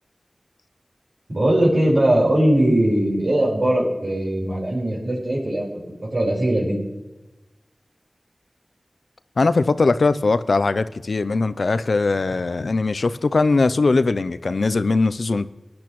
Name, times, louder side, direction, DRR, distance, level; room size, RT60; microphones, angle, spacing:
voice 1, 1.3-5.8 6.1-6.8, right 1 dB, 65° right, 4.4 m, -20 dB
voice 2, 9.4-15.5, left 3 dB, 85° left, 0.4 m, -20 dB
18.5 x 10.5 x 3.1 m
wide cardioid pair, 45°, 0 cm